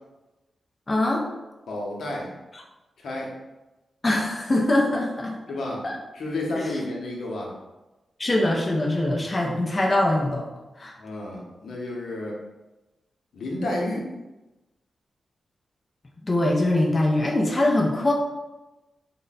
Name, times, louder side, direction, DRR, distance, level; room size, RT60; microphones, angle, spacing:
voice 1, 0.9-1.2 2.5-2.6 4.0-5.4 5.8-5.9 6.5-6.8 8.2-10.5 10.8-11.0 16.2-18.1, left 1 dB, 25° left, -1 dB, 0.5 m, -23 dB
voice 2, 1.7-2.3 3.0-3.3 5.5-5.9 6.1-7.5 11.0-12.4 13.3-14.1, left 1 dB, 80° left, -2 dB, 0.8 m, -31 dB
3.7 x 2.2 x 4.0 m, 1.1 s
wide cardioid pair, 120°, 0 cm